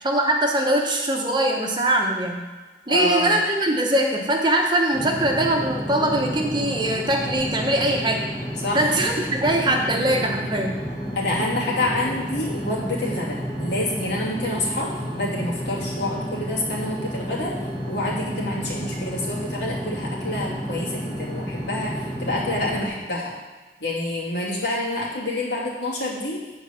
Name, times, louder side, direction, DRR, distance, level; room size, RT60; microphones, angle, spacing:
voice 1, 0.0-2.4 2.9-8.2 8.7-10.8, right 1 dB, 25° right, 1 dB, 1.0 m, -22 dB
voice 2, 2.9-3.4 8.6-8.9 11.1-17.5 17.9-23.3 23.8-26.4, left 2 dB, 90° left, -4 dB, 2.6 m, -27 dB
sound 1, 4.9-22.9, equal, 25° left, 1.2 m, -31 dB
9.1 x 4.7 x 7.0 m, 1.3 s
head